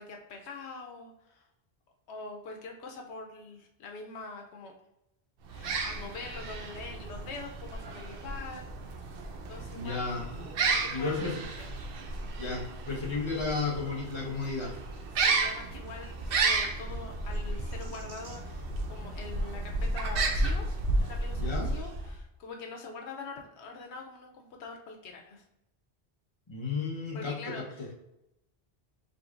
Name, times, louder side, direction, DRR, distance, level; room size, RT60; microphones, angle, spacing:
voice 1, 0.0-1.4 2.1-4.7 5.5-8.7 9.5-10.3 10.6-11.7 15.1-25.4 27.1-27.9, left 4 dB, 90° left, 2 dB, 0.9 m, -44 dB
sound 1, 5.4-22.2, right 3 dB, 65° right, 0.8 m, -33 dB
voice 2, 9.7-10.2 10.9-11.4 12.4-14.7 21.4-21.7 26.5-27.6, left 4 dB, 25° left, -3 dB, 1.0 m, -33 dB
5.0 x 3.1 x 2.5 m, 0.85 s
omnidirectional pair, 1.1 m